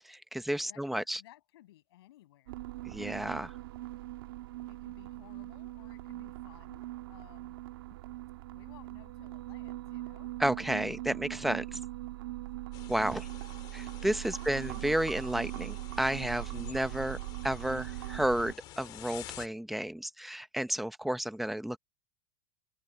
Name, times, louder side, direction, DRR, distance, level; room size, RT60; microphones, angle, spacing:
voice 1, 0.0-1.2 2.9-3.5 10.4-11.8 12.9-13.3 13.7-17.2 17.4-21.8, right 1 dB, ahead, 0.7 m, -32 dB
voice 2, 0.7-2.7 4.7-7.6 8.5-10.4 14.3-14.8, left 15 dB, 80° left, 7.7 m, -58 dB
sound 1, 2.5-18.5, right 18 dB, 65° right, 1.6 m, -41 dB
sound 2, 12.7-19.5, left 15 dB, 35° left, 2.0 m, -50 dB
supercardioid pair, 175°, 13 cm